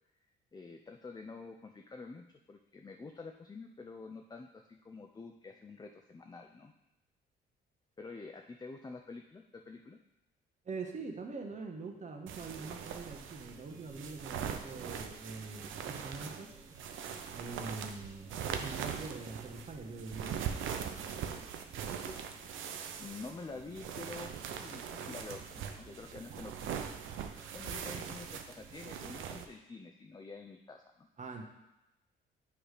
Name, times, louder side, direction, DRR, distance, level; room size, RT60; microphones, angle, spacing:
voice 1, 0.5-6.7 8.0-10.0 22.0-22.3 23.0-26.8 27.2-31.1, left 3 dB, 20° left, 4 dB, 0.5 m, -48 dB
voice 2, 10.6-16.5 17.4-20.6 31.2-31.4, right 3 dB, 40° right, 2 dB, 1.2 m, -44 dB
sound 1, 12.3-29.5, right 8 dB, 80° right, 0.6 m, -41 dB
sound 2, 13.5-29.2, right 1 dB, 15° right, 0.9 m, -59 dB
8.7 x 3.3 x 5.0 m, 0.95 s
cardioid pair, 90°, 20 cm